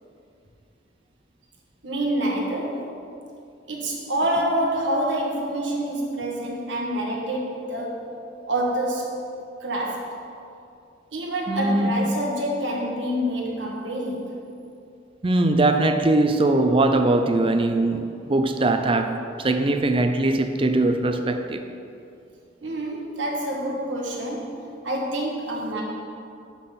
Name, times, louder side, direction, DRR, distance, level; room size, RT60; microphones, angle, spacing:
voice 1, 1.8-2.9 3.7-8.1 8.5-9.2 9.6-10.2 11.1-14.3 22.6-25.8, right 1 dB, 90° right, -1 dB, 1.6 m, -27 dB
voice 2, 11.5-12.0 15.2-21.6, right 2 dB, 30° right, 7 dB, 0.5 m, -21 dB
11.5 x 4.0 x 5.8 m, 2.5 s
head